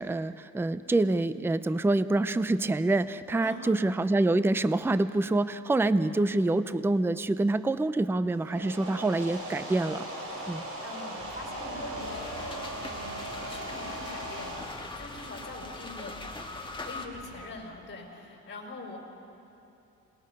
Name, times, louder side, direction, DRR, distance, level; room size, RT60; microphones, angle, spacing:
voice 1, 0.0-10.1 10.5-10.6, right 2 dB, 10° right, 14 dB, 0.5 m, -26 dB
voice 2, 3.4-3.8 10.4-16.3 16.8-19.0, left 2 dB, 40° left, 1 dB, 5.4 m, -44 dB
sound 1, 8.2-14.7, right 1 dB, 50° right, 6.0 m, -38 dB
sound 2, 11.2-17.5, equal, 25° right, 6.7 m, -47 dB
sound 3, 12.0-17.1, left 3 dB, 15° left, 1.8 m, -42 dB
27.0 x 20.5 x 5.4 m, 3.0 s
cardioid pair, 90°, 30 cm